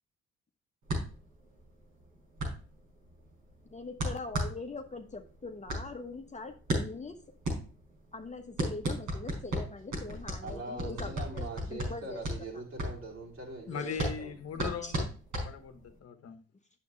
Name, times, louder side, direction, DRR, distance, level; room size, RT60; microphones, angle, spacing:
sound 1, 0.9-16.0, right 1 dB, 70° right, 5.2 m, -35 dB
voice 1, 3.7-7.2 8.1-12.2 13.8-14.1 14.8-14.9, left 3 dB, 25° left, 4 dB, 1.3 m, -42 dB
voice 2, 10.4-14.4, right 2 dB, 45° right, 0 dB, 4.5 m, -42 dB
voice 3, 13.7-15.1 15.4-16.4, left 7 dB, 55° left, 8 dB, 1.2 m, -39 dB
8.4 x 7.7 x 3.2 m, 0.37 s
hypercardioid pair, 55°, 30 cm